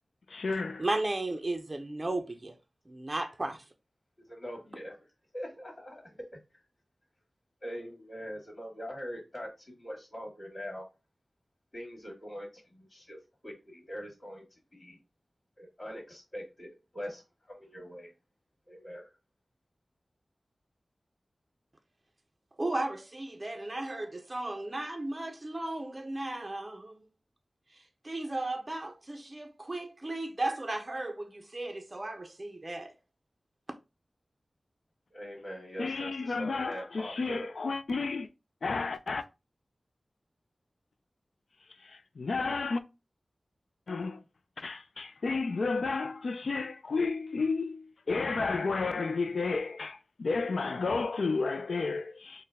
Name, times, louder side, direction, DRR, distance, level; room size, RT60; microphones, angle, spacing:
voice 1, 0.3-0.9 35.8-38.3 38.6-39.3 41.8-42.8 43.9-44.2 44.6-52.4, left 4 dB, 85° left, 0.3 m, -32 dB
voice 2, 0.8-2.6 2.9-3.6 22.6-27.0 28.0-32.9, right 2 dB, 30° right, 0.4 m, -35 dB
voice 3, 4.2-5.0 5.3-6.2 7.6-10.9 11.7-13.2 13.4-14.4 14.7-15.0 15.6-18.1 18.7-19.1 35.1-37.5, equal, 45° left, 2.0 m, -42 dB
4.4 x 2.1 x 3.4 m
wide cardioid pair, 75°, 0 cm